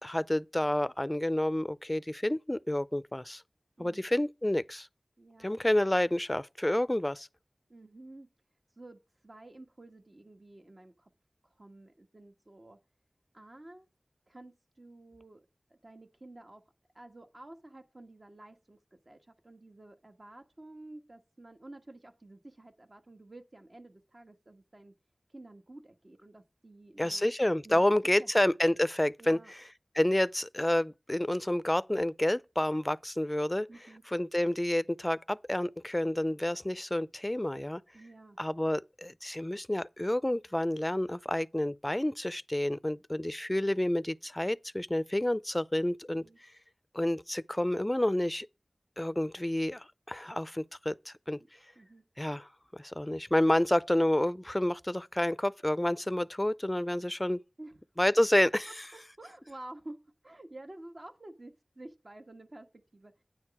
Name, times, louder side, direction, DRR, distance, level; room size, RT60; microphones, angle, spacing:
voice 1, 0.0-3.4 3.8-4.9 5.4-7.3 27.0-29.4 30.0-33.7 34.1-37.8 38.4-46.2 46.9-48.5 49.0-51.4 52.2-52.5 52.7-57.4 58.0-58.7, left 1 dB, 20° left, 0.4 m, -29 dB
voice 2, 3.8-4.1 5.2-5.6 7.7-8.3 8.8-11.1 11.4-12.8 13.3-13.9 14.3-16.6 16.9-24.9 25.3-27.3 27.6-27.8 28.2-28.3 29.2-29.5 33.7-34.0 37.9-38.4 46.1-46.4 51.4-51.5 51.7-52.0 57.6-57.8 58.7-63.2, right 2 dB, 55° right, 1.4 m, -51 dB
9.5 x 6.4 x 5.9 m
wide cardioid pair, 55°, 0 cm